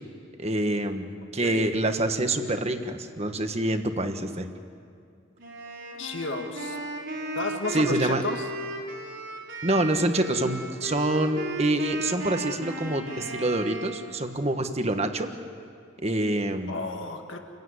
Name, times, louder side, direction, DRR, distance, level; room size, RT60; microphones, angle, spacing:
voice 1, 0.4-4.5 7.7-8.2 9.6-15.3 16.0-16.7, right 1 dB, 35° right, 7 dB, 1.5 m, -26 dB
Wind instrument woodwind instrument, 5.4-14.2, right 2 dB, 65° right, 5.1 m, -35 dB
voice 2, 6.0-6.8 7.4-8.5 16.7-17.4, left 3 dB, 75° left, 3 dB, 1.9 m, -32 dB
29.0 x 16.5 x 9.7 m, 2.3 s
head